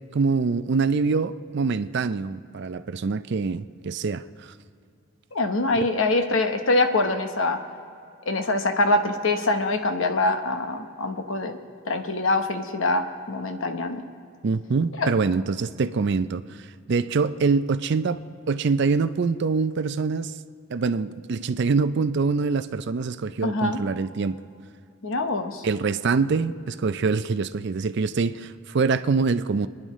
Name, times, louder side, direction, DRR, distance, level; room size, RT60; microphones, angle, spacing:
voice 1, 0.1-4.5 5.8-5.9 14.4-18.2 18.5-20.3 20.7-24.4 25.6-29.7, right 4 dB, 55° right, 13 dB, 0.4 m, -25 dB
voice 2, 5.3-7.6 8.3-11.6 11.9-14.0 15.0-15.1 23.4-23.8 25.0-25.6, left 2 dB, 65° left, 6 dB, 1.0 m, -24 dB
25.0 x 10.5 x 3.1 m, 2.3 s
head